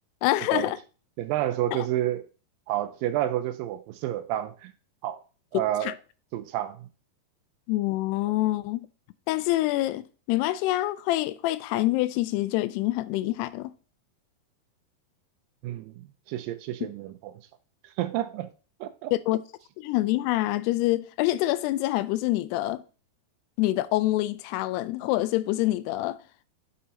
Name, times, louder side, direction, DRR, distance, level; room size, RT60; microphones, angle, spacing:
voice 1, 0.2-0.8 1.7-1.9 5.8-5.9 7.7-8.8 9.3-13.7 19.1-19.4 19.8-22.8 23.6-26.2, left 17 dB, 90° left, 2.6 m, -26 dB
voice 2, 1.2-2.2 2.7-4.7 5.0-5.2 5.5-5.9 6.3-6.9 15.6-15.9 16.3-17.3 17.8-18.5 18.8-19.1, right 13 dB, 85° right, 2.0 m, -29 dB
7.8 x 6.6 x 2.8 m
omnidirectional pair, 4.6 m